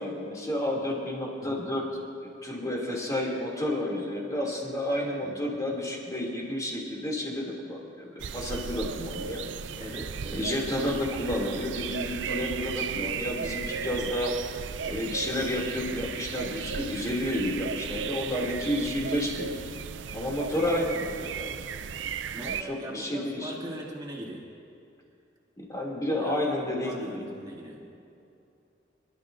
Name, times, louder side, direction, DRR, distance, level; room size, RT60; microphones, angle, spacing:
voice 1, 0.0-9.4 10.3-14.3 14.8-19.5 20.1-21.0 21.3-21.5 22.4-23.5 25.6-27.2, left 1 dB, 20° left, -2 dB, 2.7 m, -31 dB
sound 1, 8.2-22.6, right 7 dB, 75° right, 0.5 m, -35 dB
voice 2, 9.8-10.5 14.0-14.2 20.7-20.8 21.1-21.3 22.3-24.5 26.1-27.8, right 1 dB, 25° right, -4 dB, 2.5 m, -41 dB
25.5 x 12.5 x 2.6 m, 2.6 s
head